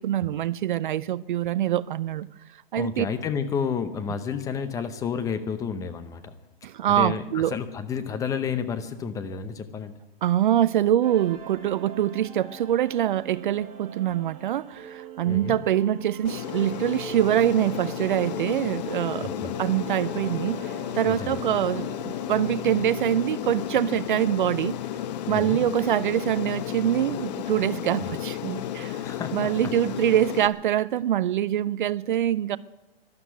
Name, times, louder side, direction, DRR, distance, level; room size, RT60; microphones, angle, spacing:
voice 1, 0.0-2.3 2.7-3.1 6.6-7.5 10.2-19.3 19.6-21.9 22.3-24.8 25.3-29.0 29.3-32.6, right 11 dB, 55° right, 0.5 m, -24 dB
voice 2, 2.8-6.3 6.9-9.9 15.3-15.6 19.2-19.5 21.1-21.4 25.3-25.6 28.0-28.1 29.0-29.7, left 6 dB, 10° left, 0.7 m, -31 dB
sound 1, 11.0-25.1, right 8 dB, 40° right, 2.3 m, -43 dB
Aircraft, 16.2-30.5, left 11 dB, 45° left, 1.0 m, -33 dB
12.5 x 12.0 x 9.4 m
hypercardioid pair, 145°, 30 cm